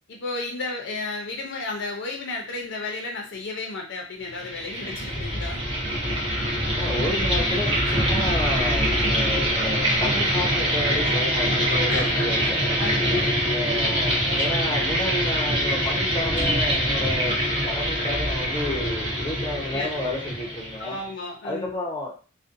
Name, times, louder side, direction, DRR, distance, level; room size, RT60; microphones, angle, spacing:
voice 1, 0.1-5.8 11.9-12.5 12.8-13.3 13.8-13.9 19.5-19.9 20.8-21.8, left 3 dB, 60° left, 0 dB, 0.6 m, -33 dB
sound 1, 4.3-21.0, equal, 25° right, 0.8 m, -24 dB
voice 2, 6.7-12.6 13.5-17.3 17.6-21.0 21.4-22.1, left 1 dB, 20° left, -1 dB, 0.6 m, -31 dB
2.6 x 2.1 x 2.5 m, 0.35 s
head